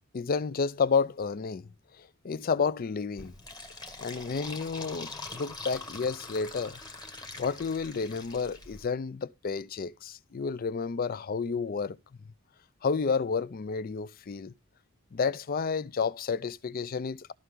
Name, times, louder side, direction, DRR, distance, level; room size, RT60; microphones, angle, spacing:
voice 1, 0.1-1.7 2.0-3.3 4.0-6.8 7.4-12.0 12.8-14.5 15.1-17.3, left 5 dB, 40° left, 0.4 m, -31 dB
Fill (with liquid), 3.2-8.9, left 3 dB, 20° left, 1.3 m, -43 dB
13.5 x 5.7 x 3.8 m
head